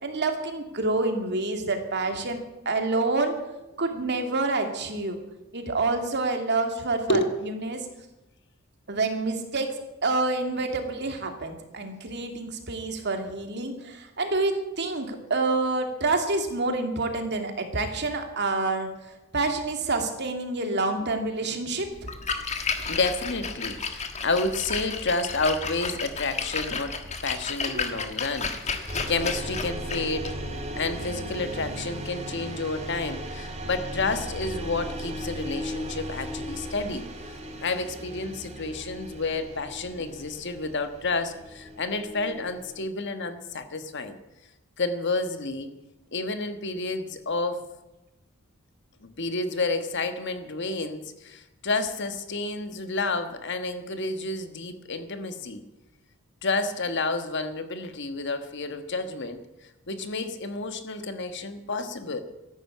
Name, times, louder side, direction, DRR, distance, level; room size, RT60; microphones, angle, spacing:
voice 1, 0.0-3.4 3.8-5.2 5.5-7.2 7.6-7.9 8.9-9.8 10.0-18.9 19.3-21.9 27.7-27.8, right 3 dB, 55° right, 5 dB, 2.5 m, -27 dB
Splash splatter, 22.0-31.9, left 5 dB, 35° left, 1.6 m, -33 dB
voice 2, 22.9-30.4 30.8-37.1 37.6-44.2 44.8-45.7 46.1-47.6 49.0-55.6 56.4-59.4 59.9-62.2, left 3 dB, 55° left, 9 dB, 1.5 m, -30 dB
sound 1, 28.9-42.8, equal, 30° right, 2.4 m, -37 dB
14.0 x 11.5 x 8.5 m, 1.0 s
head